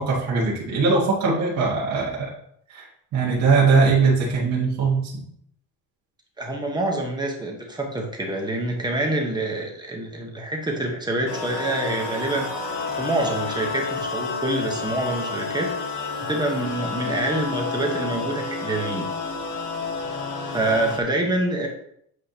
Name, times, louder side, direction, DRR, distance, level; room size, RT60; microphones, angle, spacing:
voice 1, 0.0-2.3 2.7-2.8 3.1-5.2, right 4 dB, 50° right, -5 dB, 1.8 m, -20 dB
voice 2, 6.4-12.5 12.9-15.7 16.2-19.1 20.5-21.7, right 1 dB, 10° right, 1 dB, 1.0 m, -26 dB
sound 1, 11.3-21.0, left 4 dB, 75° left, 1.4 m, -30 dB
8.0 x 4.9 x 2.8 m, 0.69 s
cardioid pair, 155°, 34 cm